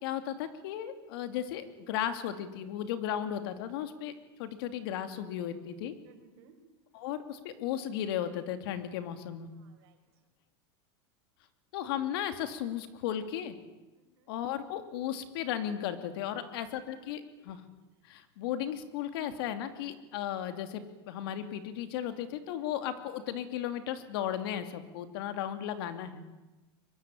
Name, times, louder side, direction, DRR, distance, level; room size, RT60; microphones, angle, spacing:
voice 1, 0.0-4.1 4.4-5.9 6.9-9.5 11.7-13.6 14.3-17.6 18.0-26.2, left 10 dB, 70° left, 9 dB, 2.8 m, -35 dB
voice 2, 6.0-6.6 9.5-10.0 13.9-14.3 16.3-16.6 16.9-17.1 22.6-22.7, right 9 dB, 75° right, 6 dB, 5.1 m, -60 dB
23.5 x 22.0 x 9.2 m, 1.1 s
supercardioid pair, 145°, 13 cm